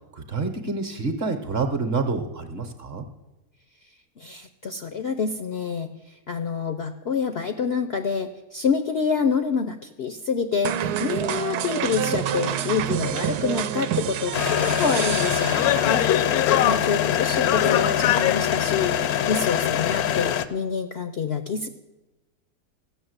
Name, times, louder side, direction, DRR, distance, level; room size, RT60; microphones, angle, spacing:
voice 1, 0.1-3.1, right 3 dB, 45° right, 7 dB, 1.1 m, -27 dB
voice 2, 4.2-5.9 6.3-16.0 16.6-21.7, left 5 dB, 60° left, 8 dB, 0.7 m, -27 dB
sound 1, 10.6-16.3, right 9 dB, 80° right, 1.2 m, -28 dB
sound 2, 14.3-20.4, left 11 dB, 75° left, 1.1 m, -22 dB
15.0 x 6.5 x 7.9 m, 1.1 s
omnidirectional pair, 1.7 m